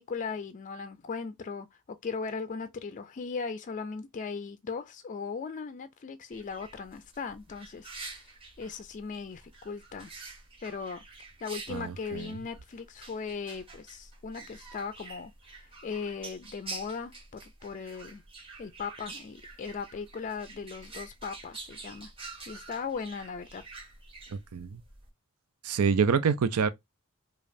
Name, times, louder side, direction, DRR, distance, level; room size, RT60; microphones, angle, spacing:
voice 1, 0.0-8.3 8.6-10.1 10.6-11.0 11.4-18.2 18.6-22.1 22.5-23.6, left 5 dB, 35° left, 0.4 m, -38 dB
sound 1, 6.3-25.1, right 3 dB, 25° right, 1.4 m, -47 dB
voice 2, 11.7-12.4 24.3-24.8 25.6-26.7, right 6 dB, 90° right, 0.5 m, -27 dB
5.0 x 2.4 x 2.6 m
head